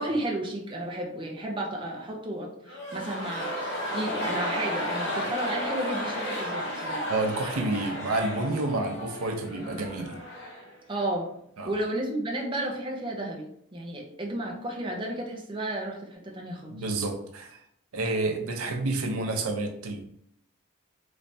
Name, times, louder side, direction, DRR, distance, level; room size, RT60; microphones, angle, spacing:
voice 1, 0.0-3.5 3.9-7.1 10.9-11.3 11.6-16.8, right 1 dB, 25° right, -1 dB, 0.5 m, -32 dB
sound 1, 2.6-10.7 11.0-11.1, equal, 55° left, 1.2 m, -33 dB
voice 2, 7.1-10.2 11.6-11.7 16.7-17.6 17.9-20.0, right 2 dB, 75° right, 4 dB, 0.6 m, -29 dB
3.2 x 3.2 x 2.7 m, 0.72 s
head